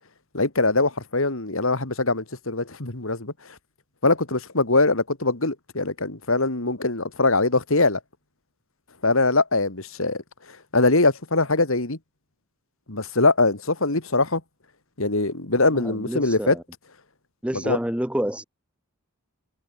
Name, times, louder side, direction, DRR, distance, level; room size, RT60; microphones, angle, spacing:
voice 1, 0.3-3.3 4.0-8.0 9.0-10.2 10.7-12.0 12.9-14.4 15.0-16.6 17.6-17.8, left 3 dB, 65° left, 2.7 m, -22 dB
voice 2, 15.7-16.6 17.4-18.4, equal, 5° right, 0.9 m, -28 dB
head